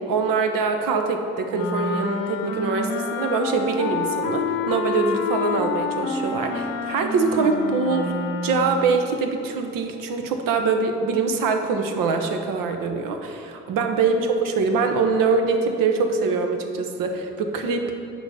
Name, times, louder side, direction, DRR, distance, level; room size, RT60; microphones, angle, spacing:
voice 1, 0.1-8.1 8.4-17.9, right 4 dB, 60° right, 5 dB, 1.0 m, -23 dB
Wind instrument woodwind instrument, 1.5-8.9, left 4 dB, 70° left, 0.8 m, -28 dB
6.1 x 5.0 x 6.8 m, 2.6 s
hypercardioid pair, 50°, 37 cm